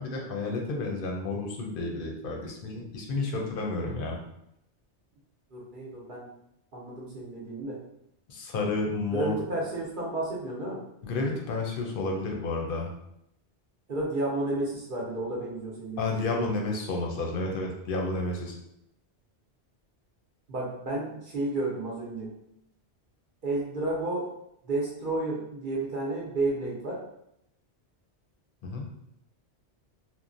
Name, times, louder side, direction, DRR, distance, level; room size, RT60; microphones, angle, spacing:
voice 1, 0.0-4.2 8.3-9.3 11.0-12.9 16.0-18.6 28.6-28.9, left 3 dB, 60° left, 1 dB, 0.7 m, -31 dB
voice 2, 5.5-6.3 6.7-7.8 9.1-10.8 13.9-16.3 20.5-22.3 23.4-24.3 24.6-27.0, right 2 dB, 55° right, -5 dB, 0.7 m, -31 dB
3.0 x 2.1 x 2.5 m, 0.78 s
omnidirectional pair, 1.2 m